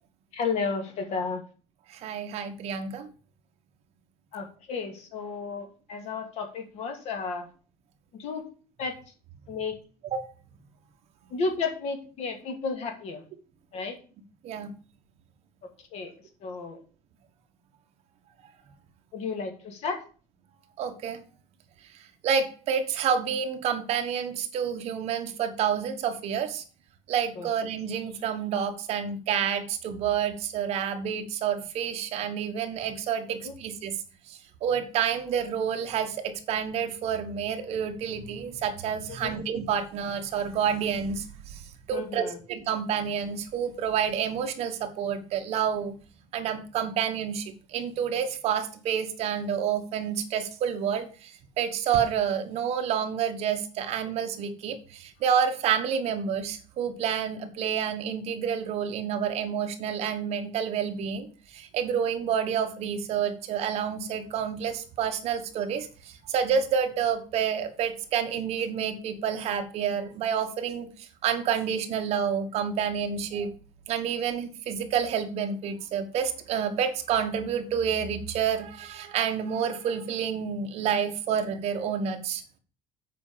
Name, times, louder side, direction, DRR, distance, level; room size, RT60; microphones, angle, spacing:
voice 1, 0.3-1.4 4.3-7.5 8.2-8.4 8.8-8.9 9.5-9.7 11.3-13.2 13.7-14.0 15.9-16.1 16.4-16.8 19.1-20.0 27.4-27.5 33.4-33.5 39.1-39.4 41.9-42.4, left 4 dB, 50° left, 5 dB, 2.4 m, -32 dB
voice 2, 1.9-3.1 10.1-10.3 14.4-14.7 20.8-21.2 22.2-26.6 27.1-34.0 34.3-41.6 41.9-45.9 46.3-61.3 61.5-70.9 71.2-73.5 73.9-82.4, right 7 dB, 50° right, 6 dB, 1.4 m, -29 dB
8.3 x 5.2 x 6.8 m, 0.38 s
cardioid pair, 165°, 14 cm